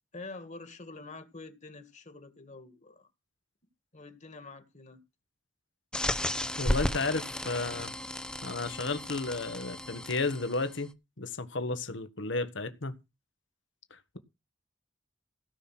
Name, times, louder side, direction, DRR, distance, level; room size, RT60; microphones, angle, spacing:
voice 1, 0.1-3.1 3.9-5.0, left 3 dB, 40° left, 2.1 m, -46 dB
sound 1, 5.9-10.8, left 1 dB, 5° left, 0.8 m, -34 dB
voice 2, 6.6-7.9 8.4-10.9 11.2-13.0 13.9-14.2, left 3 dB, 75° left, 1.5 m, -33 dB
16.5 x 6.0 x 6.0 m
head